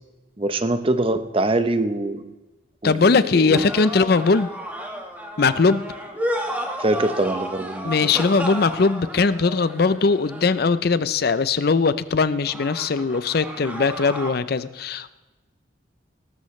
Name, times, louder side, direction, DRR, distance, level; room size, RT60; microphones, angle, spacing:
voice 1, 0.4-2.3 2.8-3.0 3.3-3.7 6.8-7.9, right 2 dB, 30° right, 10 dB, 0.7 m, -23 dB
voice 2, 2.8-4.5 5.4-5.8 7.8-15.1, left 4 dB, 55° left, 14 dB, 0.5 m, -20 dB
sound 1, 3.5-10.8 12.4-14.3, equal, 10° right, 1.4 m, -32 dB
19.0 x 13.0 x 3.2 m, 1.1 s
head